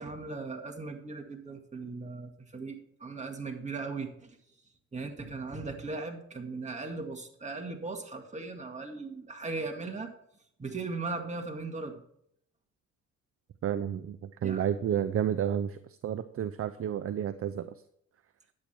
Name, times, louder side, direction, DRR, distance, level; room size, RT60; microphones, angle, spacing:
voice 1, 0.0-4.4 4.9-10.1 10.6-12.0 14.4-14.6, right 3 dB, 25° right, 3 dB, 2.1 m, -38 dB
voice 2, 13.6-17.7, right 9 dB, 50° right, 12 dB, 0.6 m, -31 dB
10.5 x 8.4 x 4.5 m, 0.70 s
cardioid pair, 90°, 30 cm